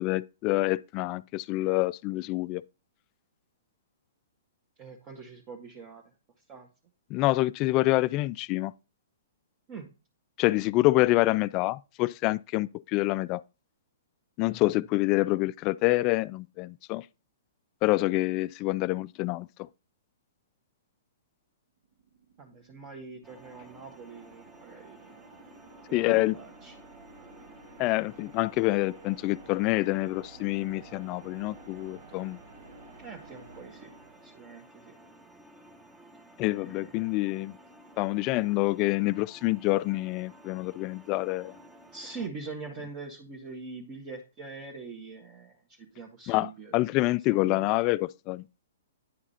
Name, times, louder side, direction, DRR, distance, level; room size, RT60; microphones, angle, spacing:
voice 1, 0.0-2.6 7.1-8.7 10.4-13.4 14.4-17.1 17.8-19.7 25.9-26.4 27.8-32.4 36.4-37.6 38.0-41.6 46.3-48.4, left 19 dB, 35° left, 0.3 m, -27 dB
voice 2, 4.8-6.0 6.5-6.7 9.7-9.9 22.4-25.1 25.9-26.8 33.0-33.9 34.2-34.9 36.5-37.0 41.9-46.8 47.3-47.7, right 4 dB, 35° right, 1.6 m, -43 dB
sound 1, 21.8-34.9, right 4 dB, 70° right, 1.5 m, -53 dB
sound 2, 23.2-42.3, equal, 10° right, 1.0 m, -54 dB
10.0 x 4.8 x 4.2 m
hypercardioid pair, 130°, 0 cm